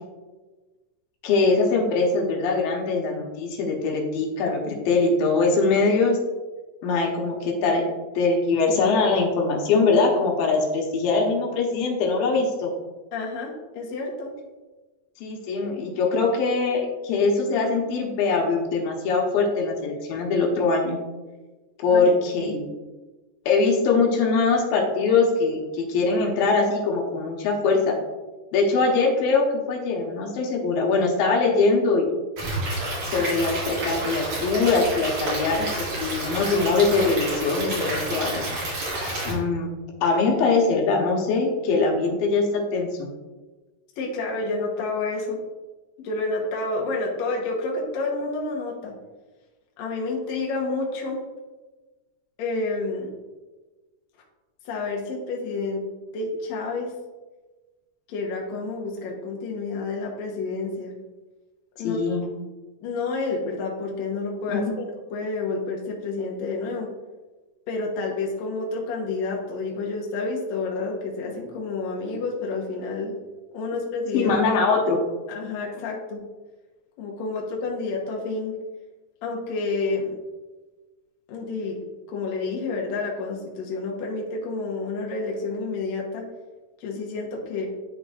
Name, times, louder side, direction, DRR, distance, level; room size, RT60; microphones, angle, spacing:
voice 1, 1.2-6.2 6.8-7.8 8.2-12.7 15.2-21.0 21.8-22.7 23.5-28.0 28.5-32.1 33.1-38.4 38.9-39.7 40.0-43.1 61.8-62.2 64.5-64.6 74.1-75.0, left 4 dB, 85° left, -1 dB, 2.7 m, -22 dB
voice 2, 13.1-14.3 15.6-16.0 21.9-22.0 22.4-22.6 44.0-45.4 46.0-48.9 49.8-51.2 52.4-53.1 54.7-55.8 56.1-56.9 58.1-60.9 61.8-62.0 62.8-66.9 67.7-73.1 73.5-74.4 75.3-76.2 77.0-78.6 79.2-80.1 81.3-81.8 82.1-86.3 86.8-87.7, left 3 dB, 65° left, -1 dB, 2.0 m, -29 dB
Stream / Liquid, 32.4-39.3, right 1 dB, 60° right, 3.3 m, -29 dB
11.0 x 3.9 x 2.4 m, 1.2 s
omnidirectional pair, 4.0 m